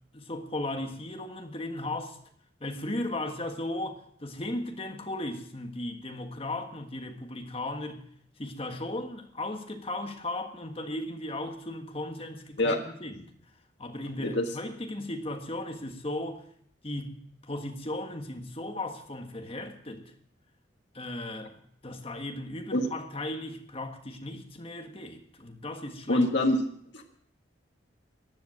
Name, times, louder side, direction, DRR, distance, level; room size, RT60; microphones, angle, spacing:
voice 1, 0.1-2.2 2.6-8.0 8.4-13.3 13.8-16.4 16.8-20.0 20.9-26.2, left 1 dB, 30° left, 1.6 m, -36 dB
voice 2, 14.2-14.5 22.7-22.9 26.1-26.6 26.9-27.0, left 1 dB, 70° left, 1.7 m, -25 dB
15.5 x 10.5 x 6.5 m
head